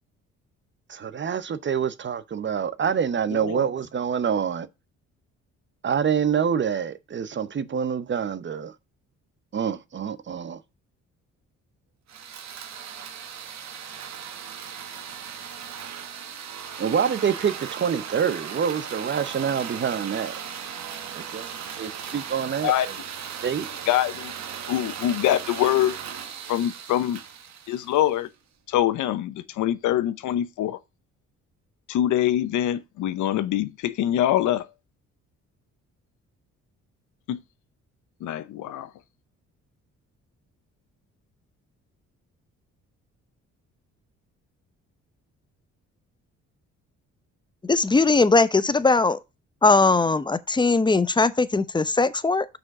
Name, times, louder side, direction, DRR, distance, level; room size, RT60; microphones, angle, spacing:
voice 1, 0.9-4.7 5.8-8.7 9.5-10.6 16.8-20.3 21.1-21.5 21.8-22.9 23.4-23.7, right 7 dB, 40° right, 0.8 m, -26 dB
voice 2, 3.3-3.6 22.6-22.9 23.9-24.3 24.7-26.0 26.5-27.2 27.7-28.3 28.7-30.8 31.9-34.6 37.3-37.4 38.2-38.9, left 12 dB, 80° left, 0.8 m, -24 dB
sound 1, 12.1-28.3, right 8 dB, 65° right, 1.4 m, -37 dB
voice 3, 47.6-49.2 49.6-52.5, left 3 dB, 15° left, 0.7 m, -20 dB
6.2 x 5.1 x 5.8 m
cardioid pair, 90°, 30 cm